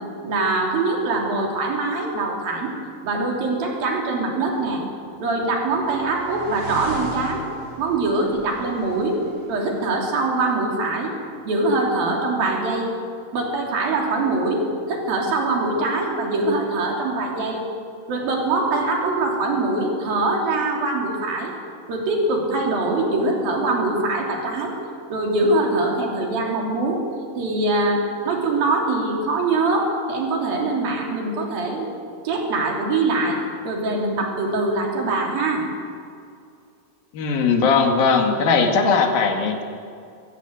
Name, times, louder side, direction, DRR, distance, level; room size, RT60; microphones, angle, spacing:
voice 1, 0.2-2.7 3.0-4.8 5.2-7.4 7.8-9.2 9.5-11.1 11.4-12.9 13.3-17.7 18.1-21.5 21.9-24.7 25.1-27.0 27.4-31.9 32.2-35.6, right 2 dB, 85° right, 0 dB, 5.0 m, -23 dB
sound 1, 5.0-9.9, right 1 dB, 65° right, 6.7 m, -38 dB
voice 2, 37.1-39.6, left 5 dB, 90° left, 4 dB, 3.9 m, -19 dB
25.0 x 16.0 x 8.1 m, 2.4 s
omnidirectional pair, 4.0 m